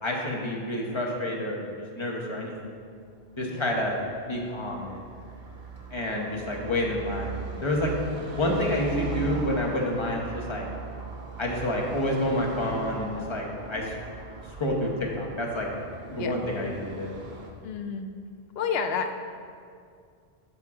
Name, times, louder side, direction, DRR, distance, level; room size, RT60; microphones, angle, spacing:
voice 1, 0.0-1.7 2.0-2.5 3.4-5.1 5.9-10.7 11.4-14.0 14.6-15.7 16.1-17.1, left 1 dB, 30° left, -1 dB, 1.0 m, -29 dB
Car passing by / Traffic noise roadway noise, 2.8-17.5, right 4 dB, 65° right, 1.0 m, -40 dB
voice 2, 3.5-3.8 13.7-13.9 16.2-16.5 17.6-18.1 18.5-19.2, left 6 dB, 75° left, 7 dB, 0.8 m, -31 dB
8.8 x 5.7 x 3.7 m, 2.2 s
omnidirectional pair, 1.1 m